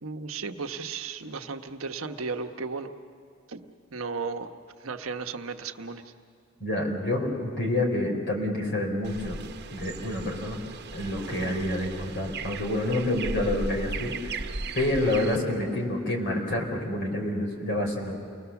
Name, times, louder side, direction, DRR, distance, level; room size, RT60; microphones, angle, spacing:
voice 1, 0.0-2.9 3.5-4.5 4.8-6.0, right 4 dB, 85° right, 5 dB, 1.1 m, -35 dB
voice 2, 6.6-9.4 9.7-10.6 10.9-14.5 14.7-18.2, left 1 dB, 55° left, 1 dB, 4.0 m, -28 dB
sound 1, 9.0-15.4, right 3 dB, 55° right, 1.1 m, -36 dB
29.0 x 20.5 x 7.1 m, 2.3 s
head